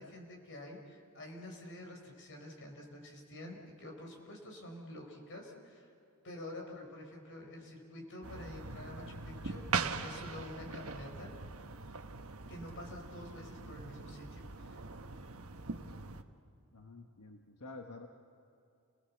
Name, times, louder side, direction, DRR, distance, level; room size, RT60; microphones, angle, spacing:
voice 1, 0.0-5.9 6.2-11.3 12.5-14.8, left 1 dB, 60° left, 2 dB, 4.6 m, -48 dB
sound 1, 8.2-16.2, right 4 dB, 70° right, 1.1 m, -41 dB
voice 2, 16.7-18.1, left 3 dB, 90° left, 4 dB, 1.3 m, -49 dB
29.5 x 19.5 x 7.2 m, 2.7 s
head